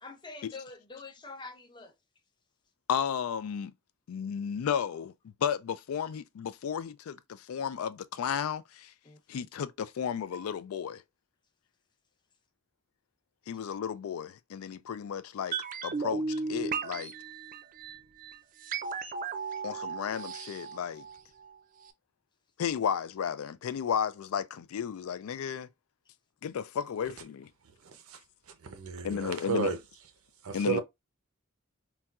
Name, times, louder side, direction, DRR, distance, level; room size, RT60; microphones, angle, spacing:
voice 1, 0.0-1.9 9.0-9.2, left 3 dB, 20° left, 0.5 m, -45 dB
voice 2, 2.9-3.7 4.1-5.1 5.4-8.9 9.3-11.0 13.5-15.5 15.8-16.2 16.5-17.1 19.6-21.1 22.6-25.7 26.4-27.5 29.0-29.7 30.5-30.8, left 7 dB, 85° left, 0.3 m, -33 dB
sound 1, 15.5-21.6 21.8-21.9, right 5 dB, 40° right, 0.3 m, -36 dB
voice 3, 27.8-28.2 28.6-29.8 30.4-30.8, right 5 dB, 85° right, 0.6 m, -33 dB
4.0 x 2.3 x 2.3 m
head